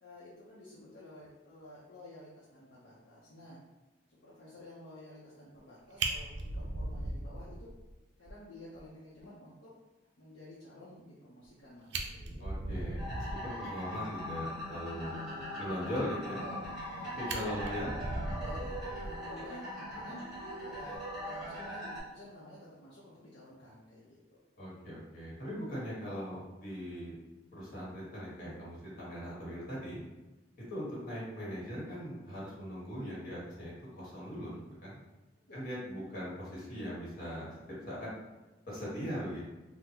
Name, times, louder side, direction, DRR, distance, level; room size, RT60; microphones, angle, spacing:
voice 1, 0.0-3.6 4.1-7.7 8.2-9.7 10.2-12.6 15.1-15.8 16.1-16.6 16.8-17.8 18.3-20.2 20.6-24.4 35.5-35.6, left 1 dB, 65° left, -9 dB, 0.7 m, -52 dB
Fire, 5.5-5.7 6.0-7.9 8.3-8.4 8.7-8.8 9.2-9.3 11.4-11.5 11.8-13.6 16.4-16.9 17.3-19.5 20.8-21.0, right 2 dB, 65° right, 0.4 m, -38 dB
voice 2, 12.4-15.2 15.6-16.4 17.2-18.0 24.6-27.1 27.5-30.0 30.7-34.5 34.8-35.0 35.5-37.5 37.9-38.1 38.7-39.4, equal, 50° left, -6 dB, 1.4 m, -40 dB
sound 1, 13.0-22.0, equal, 5° right, 1.2 m, -41 dB
3.7 x 2.1 x 2.8 m, 1.2 s
head